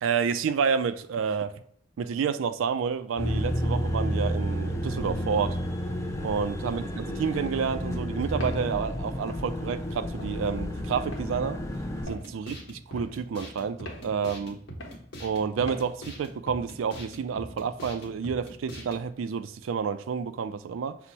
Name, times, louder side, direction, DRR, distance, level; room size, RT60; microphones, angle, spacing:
voice 1, 0.0-1.5 2.0-5.6 6.2-11.6 12.1-12.6 12.9-14.6 15.2-21.0, right 6 dB, 90° right, 0.3 m, -29 dB
sound 1, 3.2-12.1, equal, 15° left, 0.4 m, -31 dB
Walk footsteps, 8.4-8.7 9.3-9.5 10.2-10.4 11.1-11.3 12.1-12.3 13.0-13.1 13.9-14.1 14.8-15.0 15.7-15.9, left 2 dB, 80° left, 0.9 m, -40 dB
sound 2, 12.0-19.1, equal, 60° left, 1.1 m, -42 dB
6.0 x 2.0 x 4.0 m
head